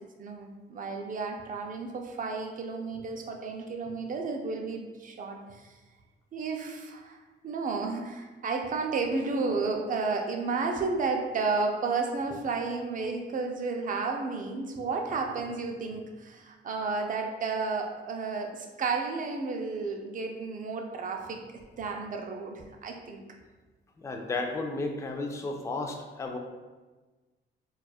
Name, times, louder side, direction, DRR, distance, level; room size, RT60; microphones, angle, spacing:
voice 1, 0.2-5.7 6.3-7.2 7.4-21.4 21.8-23.2, right 4 dB, 40° right, 3 dB, 0.5 m, -32 dB
voice 2, 24.0-26.4, left 3 dB, 15° left, 3 dB, 0.3 m, -33 dB
4.1 x 2.3 x 2.3 m, 1.3 s
cardioid pair, 90°, 20 cm